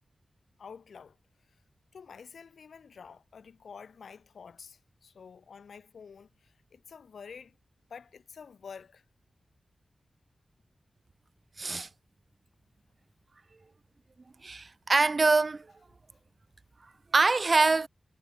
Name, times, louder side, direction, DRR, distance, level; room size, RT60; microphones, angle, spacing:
voice 1, 0.6-1.2 1.9-7.6 7.9-9.0, left 6 dB, 85° left, 2.0 m, -49 dB
voice 2, 11.6-11.9 14.4-15.7 17.1-17.9, right 3 dB, 50° right, 0.7 m, -24 dB
cardioid pair, 50°, 0 cm